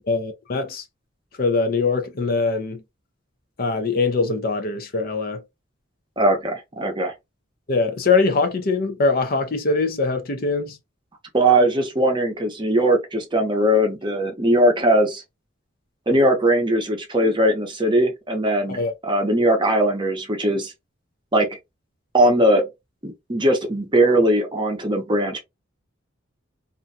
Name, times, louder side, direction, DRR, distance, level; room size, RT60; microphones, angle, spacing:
voice 1, 0.1-0.8 1.4-2.8 3.6-5.4 7.7-10.8 18.7-18.9, left 3 dB, 45° left, 0.5 m, -22 dB
voice 2, 6.2-7.1 11.3-15.2 16.1-20.7 21.3-21.5 22.1-22.7 23.0-25.4, right 1 dB, 25° right, 0.7 m, -20 dB
2.5 x 2.2 x 2.6 m
head